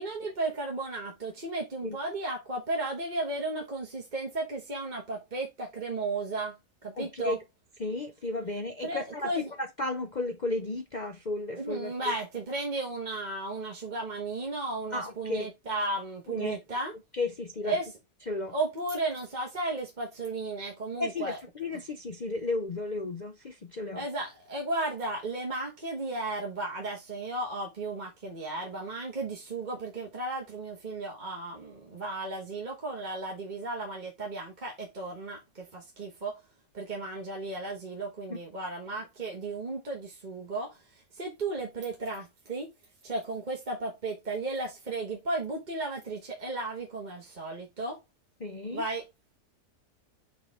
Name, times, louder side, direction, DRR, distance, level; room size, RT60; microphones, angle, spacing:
voice 1, 0.0-6.6 6.8-7.4 8.8-9.5 11.6-16.9 17.6-17.9 18.5-21.4 21.7-21.8 23.9-36.4 36.7-42.7 43.0-48.0 48.7-49.1, right 2 dB, 30° right, 1.4 m, -34 dB
voice 2, 7.0-7.4 7.8-11.9 14.9-15.5 16.3-16.6 17.1-17.7 18.3-18.5 21.0-24.0 38.3-38.4 48.4-48.8, left 2 dB, 75° left, 0.4 m, -34 dB
5.6 x 5.0 x 3.5 m
omnidirectional pair, 1.8 m